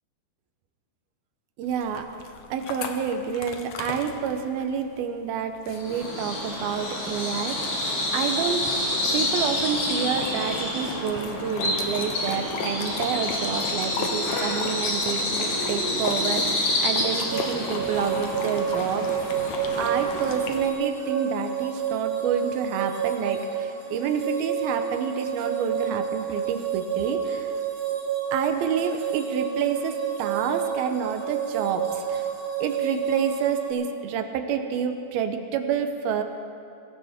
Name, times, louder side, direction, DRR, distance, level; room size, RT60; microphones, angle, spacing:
voice 1, 1.6-2.0 2.5-7.8 8.1-8.6 9.1-19.1 19.8-27.5 28.3-32.3 32.6-36.2, right 7 dB, 75° right, 6 dB, 2.6 m, -28 dB
sound 1, 1.7-20.7, left 5 dB, 90° left, 1.5 m, -38 dB
Bird vocalization bird call bird song, 5.7-20.5, left 1 dB, 65° left, 4.9 m, -28 dB
sound 2, 17.3-33.7, right 8 dB, 55° right, 3.2 m, -29 dB
23.0 x 15.5 x 3.6 m, 2.5 s
omnidirectional pair, 4.7 m